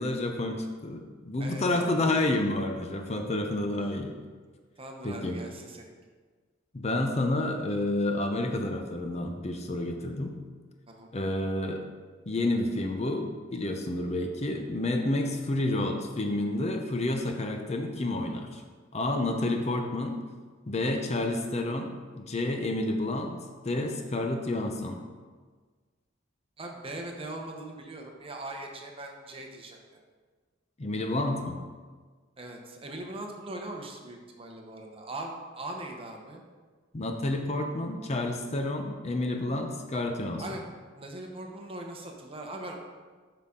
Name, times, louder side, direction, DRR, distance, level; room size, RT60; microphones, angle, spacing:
voice 1, 0.0-4.1 5.0-5.4 6.7-10.3 11.1-11.8 12.3-18.6 18.9-20.2 20.7-23.3 23.6-25.0 30.8-31.6 36.9-40.4, left 2 dB, 35° left, 4 dB, 0.6 m, -29 dB
voice 2, 1.4-2.0 4.8-5.9 10.9-11.1 26.6-30.0 32.4-36.4 40.4-40.6 41.0-42.8, right 2 dB, 30° right, 2 dB, 0.9 m, -40 dB
8.1 x 5.7 x 3.7 m, 1.5 s
head